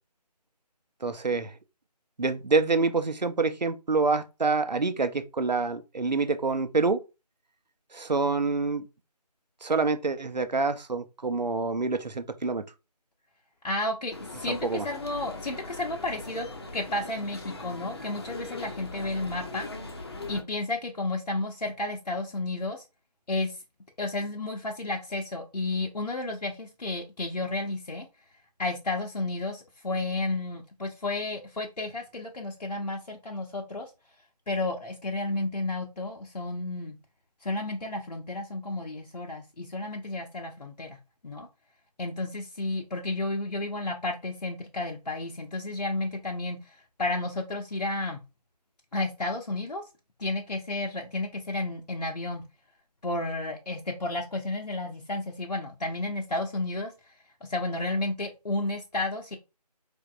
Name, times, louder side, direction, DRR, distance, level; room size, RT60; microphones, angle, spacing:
voice 1, 1.0-1.5 2.2-7.0 7.9-8.8 9.6-12.6 14.6-14.8, right 4 dB, 85° right, 0.8 m, -26 dB
voice 2, 13.6-16.5 16.7-19.7 20.3-22.8 23.3-23.6 24.0-28.1 28.6-33.9 34.5-37.0 37.4-41.0 41.2-41.5 42.0-48.2 48.9-49.8 50.2-52.4 53.0-56.9 57.4-59.4, left 2 dB, 75° left, 1.0 m, -32 dB
sound 1, 14.1-20.4, left 2 dB, 40° left, 0.8 m, -40 dB
4.6 x 3.4 x 2.5 m
figure-of-eight pair, 165°, 21 cm